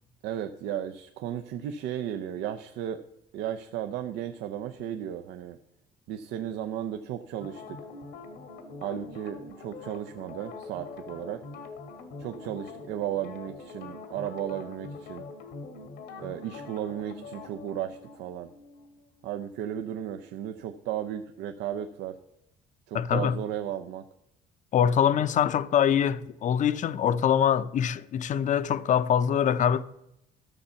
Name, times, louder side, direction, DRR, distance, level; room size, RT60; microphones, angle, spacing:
voice 1, 0.2-3.0 3.3-5.6 6.1-7.8 8.8-11.4 12.2-15.2 16.2-18.5 19.2-22.2 22.9-24.0, right 10 dB, 85° right, 0.6 m, -34 dB
sound 1, 7.4-20.5 20.8-20.9, left 3 dB, 85° left, 1.7 m, -44 dB
voice 2, 22.9-23.4 24.7-29.8, left 9 dB, 50° left, 0.6 m, -24 dB
13.0 x 6.8 x 5.7 m
cardioid pair, 110°, 17 cm